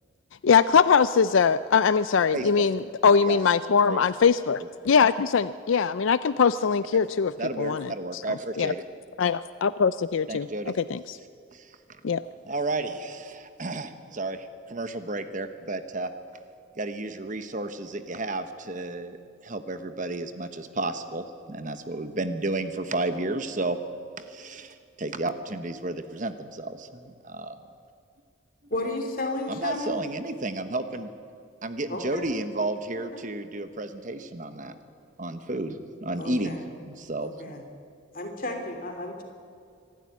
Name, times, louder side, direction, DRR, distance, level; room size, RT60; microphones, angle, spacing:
voice 1, 0.4-8.2 8.6-8.7 9.2-10.5 10.8-11.2 12.0-12.2, left 6 dB, 70° left, 15 dB, 0.4 m, -22 dB
voice 2, 2.3-2.7 3.3-3.4 3.9-4.0 7.4-8.8 10.3-10.7 11.5-12.0 12.4-16.1 16.8-23.8 24.2-27.6 29.5-31.1 31.6-34.7 35.2-36.6 36.9-37.5, right 2 dB, 40° right, 10 dB, 1.0 m, -32 dB
voice 3, 28.7-30.0 31.9-32.3 32.9-33.2 36.2-36.6 37.2-37.6 38.1-39.2, left 2 dB, 40° left, 4 dB, 3.0 m, -33 dB
25.5 x 12.5 x 9.5 m, 2.4 s
head